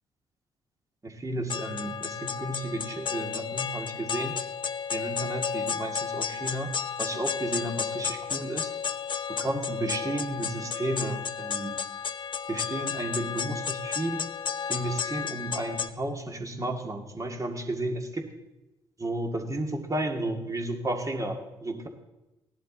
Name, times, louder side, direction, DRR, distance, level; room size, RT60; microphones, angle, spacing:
voice 1, 1.0-4.4 4.9-8.7 9.4-11.8 12.5-14.3 14.7-18.3 19.0-21.9, right 1 dB, 25° right, 4 dB, 2.0 m, -33 dB
sound 1, 1.5-15.9, left 7 dB, 40° left, 0.7 m, -33 dB
16.0 x 11.0 x 4.0 m, 0.98 s
hypercardioid pair, 45°, 12 cm